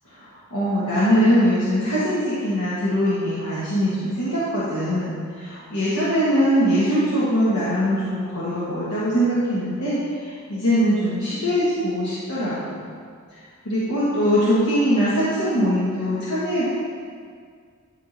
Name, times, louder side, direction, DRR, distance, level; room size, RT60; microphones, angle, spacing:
voice 1, 0.5-12.8 13.6-16.7, equal, 90° left, -10 dB, 1.5 m, -22 dB
10.5 x 3.8 x 4.1 m, 2.1 s
head